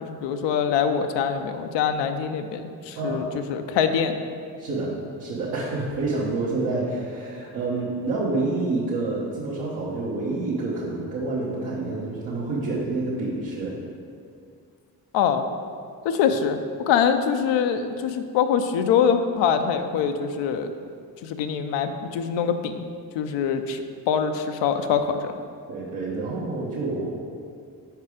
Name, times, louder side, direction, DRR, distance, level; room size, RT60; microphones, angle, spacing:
voice 1, 0.0-4.2 15.1-15.5 16.0-16.6 16.9-20.7 21.2-22.9 23.1-25.4, left 7 dB, 75° left, 7 dB, 0.6 m, -24 dB
voice 2, 2.9-3.3 4.6-4.9 5.2-13.8 25.7-27.1, right 3 dB, 75° right, -10 dB, 1.2 m, -28 dB
4.8 x 4.6 x 4.8 m, 2.3 s
supercardioid pair, 50°, 44 cm